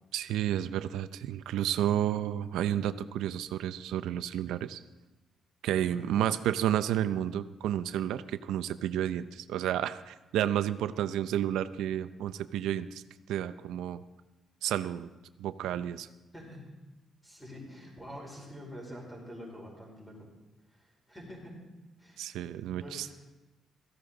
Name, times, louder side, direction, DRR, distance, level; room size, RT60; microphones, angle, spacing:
voice 1, 0.1-4.8 5.6-13.0 13.3-14.0 14.6-15.1 15.4-16.1 22.2-23.1, right 11 dB, 90° right, 13 dB, 0.5 m, -31 dB
voice 2, 16.3-16.7 17.2-20.3 20.7-21.6 22.0-22.2 22.7-23.1, equal, 5° left, -2 dB, 5.1 m, -46 dB
17.0 x 14.5 x 3.9 m, 1.1 s
cardioid pair, 105°, 0 cm